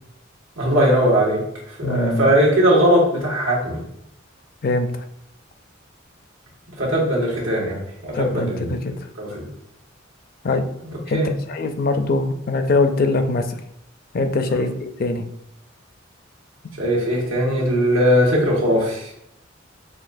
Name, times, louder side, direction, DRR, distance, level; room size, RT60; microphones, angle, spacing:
voice 1, 0.6-3.8 6.8-8.8 9.2-9.5 11.1-11.3 14.5-14.7 16.8-19.1, equal, 90° right, -3 dB, 1.4 m, -19 dB
voice 2, 1.8-2.3 4.6-4.9 8.1-8.9 10.4-10.6 11.1-11.2 11.5-13.6 14.1-15.2, left 3 dB, 45° left, 8 dB, 0.4 m, -22 dB
6.0 x 2.4 x 2.6 m, 0.76 s
head